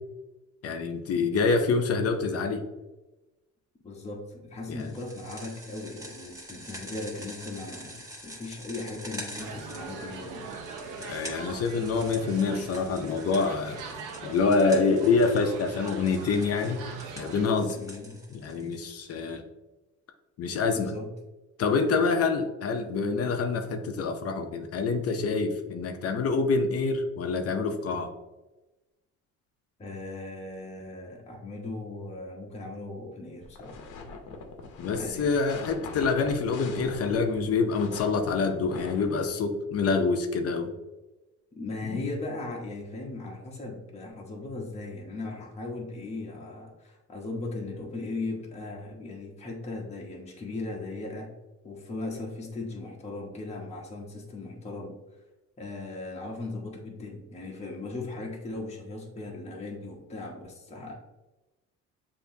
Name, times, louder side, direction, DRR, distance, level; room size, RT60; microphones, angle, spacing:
voice 1, 0.6-2.6 4.7-4.9 11.0-13.8 14.2-16.9 17.2-17.8 18.3-19.4 20.4-20.9 21.6-28.1 34.8-40.7 41.8-42.1, left 4 dB, 50° left, 6 dB, 0.6 m, -26 dB
voice 2, 3.8-10.5 17.8-18.2 20.7-21.1 29.8-33.8 35.0-35.3 41.5-51.3 51.6-54.9 55.6-60.9, left 2 dB, 20° left, -2 dB, 0.9 m, -38 dB
sound 1, 4.8-19.1, right 1 dB, 10° right, 1.3 m, -46 dB
sound 2, 9.4-17.5, right 4 dB, 90° right, 0.8 m, -42 dB
sound 3, 33.4-39.3, left 4 dB, 85° left, 0.8 m, -43 dB
6.9 x 2.8 x 2.7 m, 1.1 s
cardioid pair, 110°, 30 cm